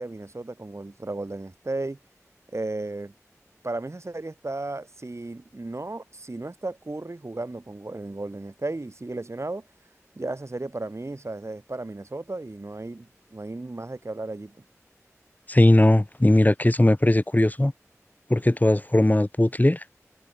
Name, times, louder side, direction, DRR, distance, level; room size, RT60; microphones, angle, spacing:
voice 1, 0.0-2.0 2.5-3.1 3.6-9.7 10.2-14.5, right 2 dB, 55° right, 7.4 m, -34 dB
voice 2, 15.5-17.7 18.3-19.8, left 1 dB, 30° left, 5.9 m, -19 dB
wide cardioid pair, 45°, 6 cm